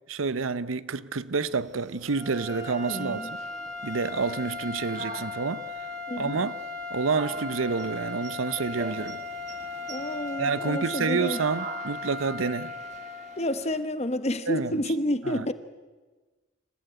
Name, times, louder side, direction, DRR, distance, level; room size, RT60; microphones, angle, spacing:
voice 1, 0.1-3.2 3.8-5.7 6.2-6.6 6.9-9.2 10.4-12.7 14.5-14.7 15.2-15.5, right 4 dB, 90° right, 0.7 m, -28 dB
sound 1, 1.5-13.8, right 3 dB, 35° right, 1.4 m, -45 dB
sound 2, 2.0-13.5, left 3 dB, 50° right, 5.1 m, -37 dB
voice 2, 2.9-3.3 6.1-6.4 9.9-11.4 13.4-15.5, left 1 dB, 30° left, 1.1 m, -29 dB
26.5 x 15.0 x 9.2 m
head